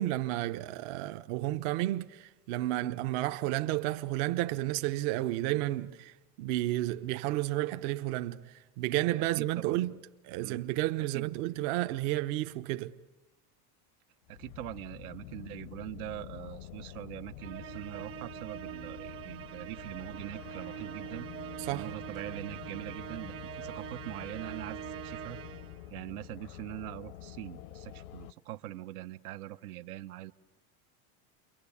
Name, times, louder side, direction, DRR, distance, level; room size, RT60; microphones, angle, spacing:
voice 1, 0.0-9.9 10.2-12.9 21.6-21.9, right 16 dB, 55° right, 0.9 m, -32 dB
voice 2, 9.4-9.9 10.4-10.6 11.1-11.3 14.3-21.3 21.7-25.4 25.9-30.3, right 14 dB, 80° right, 1.0 m, -43 dB
sound 1, 14.3-28.3, left 13 dB, 70° left, 0.9 m, -47 dB
Musical instrument, 17.4-25.9, right 12 dB, 30° right, 0.8 m, -44 dB
29.5 x 23.5 x 8.5 m
supercardioid pair, 155°, 43 cm